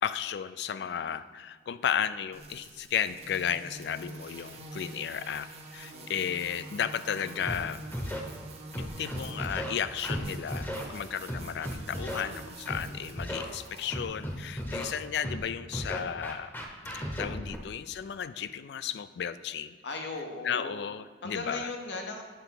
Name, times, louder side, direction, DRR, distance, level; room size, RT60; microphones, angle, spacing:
voice 1, 0.0-7.8 8.8-16.5 17.2-19.8 20.4-21.7, left 8 dB, 70° left, 14 dB, 0.3 m, -34 dB
voice 2, 0.7-1.2 5.9-6.3 11.0-11.2 19.8-20.9 21.2-22.2, left 3 dB, 85° left, 3 dB, 0.9 m, -39 dB
sound 1, 2.3-15.1, right 2 dB, 35° right, 0.8 m, -46 dB
Scratching (performance technique), 7.4-7.6 7.9-8.2 8.7-9.7 10.0-10.2 10.5-10.8 11.3-12.2 12.7-12.8 13.2-13.4 13.9-14.8 15.2-15.4 15.7-17.6, equal, 10° left, 0.8 m, -34 dB
8.9 x 3.4 x 5.8 m, 1.5 s
head